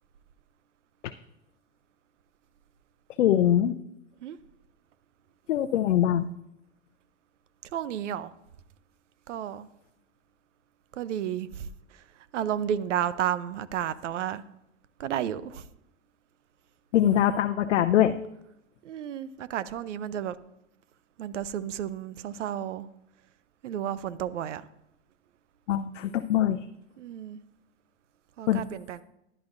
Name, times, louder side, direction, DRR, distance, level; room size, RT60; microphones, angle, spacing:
voice 1, 3.2-3.7 5.5-6.3 16.9-18.2 25.7-26.6 28.5-28.6, left 11 dB, 80° left, 8 dB, 0.6 m, -23 dB
voice 2, 7.7-8.3 9.3-9.7 11.0-12.0 12.3-14.4 15.0-15.7 18.8-20.4 21.2-22.9 23.6-24.7 27.0-27.4 28.4-29.0, right 10 dB, 80° right, 16 dB, 0.7 m, -32 dB
15.0 x 11.0 x 2.6 m, 0.84 s
hypercardioid pair, 110°, 36 cm